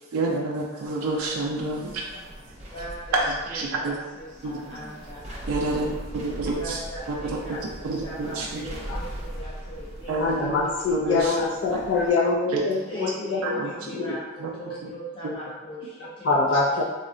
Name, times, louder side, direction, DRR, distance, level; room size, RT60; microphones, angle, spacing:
voice 1, 0.0-2.1 3.5-3.9 4.4-4.6 5.5-6.8 7.1-7.6 7.8-8.7 10.1-10.6 10.9-11.3 12.5-12.6 13.4-13.7 14.4-14.7 15.2-15.3, right 3 dB, 90° right, -2 dB, 0.4 m, -29 dB
voice 2, 0.7-1.1 2.7-5.8 6.5-10.5 10.9-11.4 12.0-12.1 12.9-16.3 16.7-16.8, right 1 dB, 25° left, -8 dB, 0.7 m, -40 dB
sound 1, 0.8-12.1, right 1 dB, 30° right, 0.5 m, -40 dB
voice 3, 10.2-14.2 16.2-16.8, left 3 dB, 55° left, -3 dB, 0.3 m, -24 dB
3.6 x 2.1 x 2.5 m, 1.2 s
head